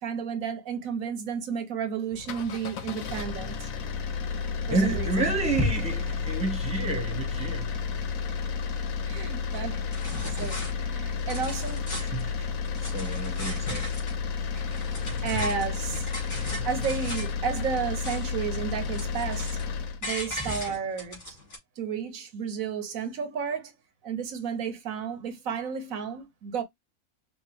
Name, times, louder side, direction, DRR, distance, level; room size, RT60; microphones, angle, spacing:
voice 1, 0.0-3.7 4.7-5.1 9.0-9.9 10.4-11.9 13.7-13.8 15.2-16.1 16.6-19.6 20.0-21.4 21.8-23.7 24.0-26.6, right 7 dB, 90° right, 1.3 m, -32 dB
sound 1, 2.1-20.0, left 5 dB, 85° left, 1.2 m, -31 dB
voice 2, 4.7-7.8 10.2-10.4 12.0-13.9 14.7-15.3 16.3-16.7, right 2 dB, 5° right, 1.3 m, -30 dB
sound 2, 9.5-9.6 9.9-10.7 11.1-12.2 12.7-14.2 14.5-17.4 17.7-18.4 18.7-19.7 20.0-21.6, left 1 dB, 60° left, 2.7 m, -38 dB
5.2 x 2.5 x 3.3 m
omnidirectional pair, 1.4 m